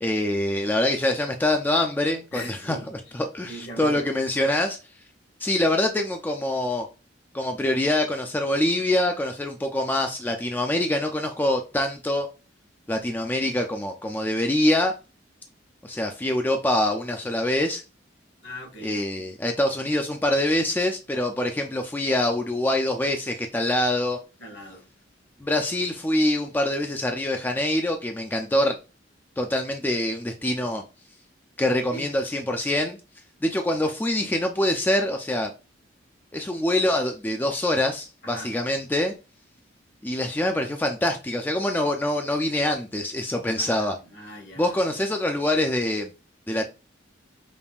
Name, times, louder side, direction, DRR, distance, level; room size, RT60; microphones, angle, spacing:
voice 1, 0.0-4.8 5.4-6.9 7.3-12.3 12.9-14.9 15.8-17.8 18.8-24.2 25.4-28.8 29.4-30.8 31.6-33.0 33.4-35.5 36.3-39.1 40.0-43.9 44.6-46.1 46.5-46.6, left 1 dB, 10° left, 0.3 m, -25 dB
voice 2, 2.3-2.9 3.5-4.1 13.4-13.6 18.4-19.3 24.4-24.9 31.9-32.1 38.2-38.5 43.6-44.8, equal, 70° left, 1.4 m, -40 dB
5.2 x 2.5 x 2.3 m
head